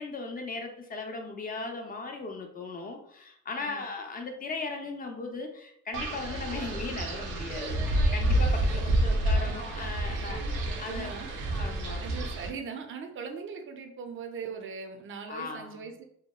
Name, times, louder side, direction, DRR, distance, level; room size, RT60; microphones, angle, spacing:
voice 1, 0.0-10.4 10.8-11.2 11.6-12.0 15.3-15.9, left 3 dB, 30° left, 4 dB, 0.5 m, -37 dB
Wind, 5.9-12.5, right 1 dB, 90° right, 0.6 m, -28 dB
voice 2, 10.0-10.5 10.9-11.5 12.0-16.0, right 5 dB, 45° right, 4 dB, 0.5 m, -40 dB
2.8 x 2.1 x 2.2 m, 0.68 s
cardioid pair, 90°, 30 cm